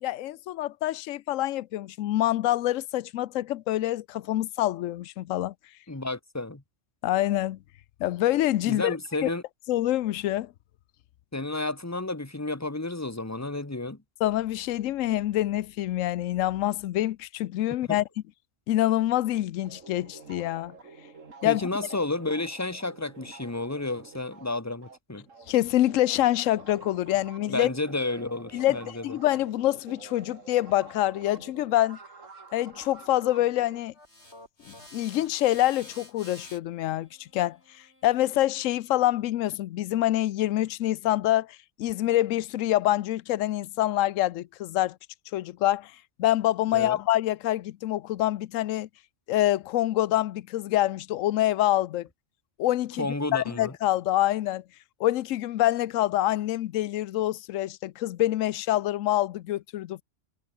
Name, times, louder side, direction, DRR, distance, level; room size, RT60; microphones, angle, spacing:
voice 1, 0.0-5.5 7.0-7.6 8.0-9.0 9.2-9.3 9.7-10.5 14.2-18.0 18.7-20.7 21.4-21.7 25.5-27.7 28.5-32.0 32.5-33.9 34.9-45.0 45.3-45.9 46.2-48.9 49.3-52.1 52.6-53.1 53.3-54.6 55.0-60.0, left 14 dB, 80° left, 1.0 m, -26 dB
voice 2, 5.9-6.6 8.7-9.4 11.3-14.0 17.9-18.0 21.4-25.3 27.5-29.2 46.7-47.0 53.0-53.7, left 2 dB, 15° left, 1.6 m, -31 dB
sound 1, 19.6-25.5 25.8-33.8, right 4 dB, 85° right, 2.8 m, -49 dB
sound 2, 33.9-39.1, left 1 dB, 55° left, 8.1 m, -51 dB
omnidirectional pair, 1.3 m